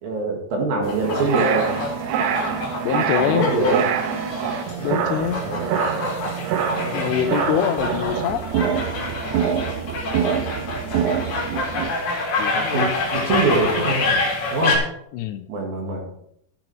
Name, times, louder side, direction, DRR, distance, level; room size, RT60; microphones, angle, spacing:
voice 1, 0.0-1.7 2.5-2.6 3.2-3.8 5.4-5.8 6.7-7.1 12.5-14.3 14.5-14.8 15.5-16.0, right 2 dB, 60° right, 1 dB, 3.4 m, -24 dB
sound 1, 0.8-14.8, left 3 dB, 45° left, 3.7 m, -27 dB
sound 2, 1.0-11.9, right 8 dB, 75° right, 2.7 m, -25 dB
voice 2, 2.8-3.5 4.8-5.4 6.9-8.4 12.4-12.9 15.1-15.5, left 10 dB, 80° left, 10 dB, 2.7 m, -24 dB
12.0 x 7.8 x 4.6 m, 0.73 s
omnidirectional pair, 5.1 m